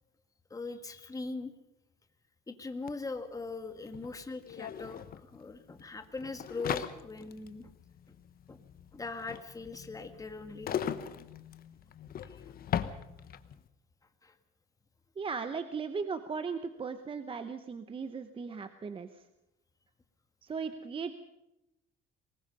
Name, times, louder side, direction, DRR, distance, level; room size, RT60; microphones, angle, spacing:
voice 1, 0.5-1.5 2.5-7.7 8.1-8.2 8.5-8.6 8.9-10.7 12.2-12.4 14.2-14.3, left 3 dB, 15° left, 7 dB, 1.7 m, -41 dB
sound 1, 2.9-3.0 3.2-13.6, left 9 dB, 45° left, 1.1 m, -39 dB
voice 2, 15.2-19.3 20.4-21.1, right 5 dB, 25° right, 10 dB, 0.9 m, -37 dB
23.5 x 20.5 x 5.4 m, 0.91 s
cardioid pair, 135°, 21 cm